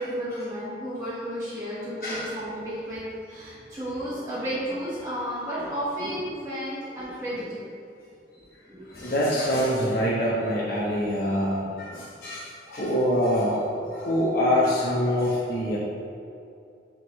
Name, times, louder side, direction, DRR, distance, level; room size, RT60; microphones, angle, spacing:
voice 1, 0.0-3.0 3.3-7.6 8.7-8.8, equal, 15° right, -11 dB, 1.2 m, -32 dB
voice 2, 2.0-2.3 8.9-13.6 13.9-15.8, equal, 55° left, -7 dB, 1.0 m, -25 dB
8.9 x 3.7 x 3.1 m, 2.5 s
head